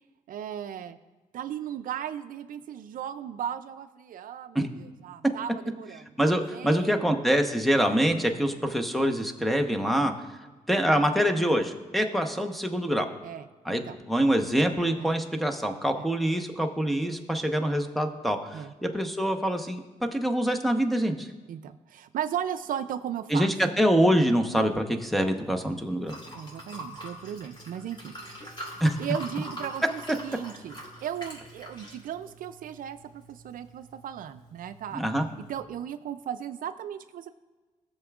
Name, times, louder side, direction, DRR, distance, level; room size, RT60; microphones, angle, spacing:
voice 1, 0.3-1.0 1.3-7.0 8.3-8.5 13.2-14.0 15.0-15.1 16.0-16.1 18.5-18.7 21.5-23.5 26.3-28.6 29.0-35.0 35.5-37.3, right 9 dB, 70° right, 11 dB, 0.4 m, -36 dB
voice 2, 6.2-10.1 10.7-13.1 13.6-13.8 14.1-19.8 20.1-21.3 23.3-26.2 28.8-28.9 34.9-35.2, equal, ahead, 2 dB, 0.9 m, -25 dB
Liquid, 25.0-35.6, equal, 35° left, 3.2 m, -45 dB
16.5 x 6.9 x 2.4 m, 1.3 s
cardioid pair, 80°, 15 cm